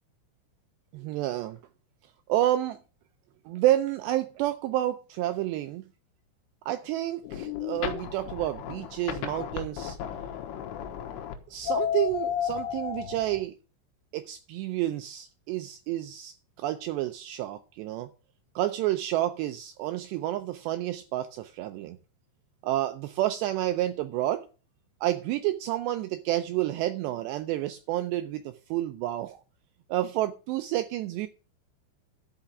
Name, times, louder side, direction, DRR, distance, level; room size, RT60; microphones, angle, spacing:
voice 1, 0.9-1.6 2.3-2.8 3.5-5.8 6.7-10.0 11.5-13.6 14.1-18.1 18.6-22.0 22.6-24.5 25.0-29.4 29.9-31.3, right 14 dB, 85° right, 2.5 m, -29 dB
sound 1, 7.2-13.4, left 9 dB, 90° left, 3.8 m, -33 dB
12.0 x 5.8 x 7.1 m
omnidirectional pair, 5.6 m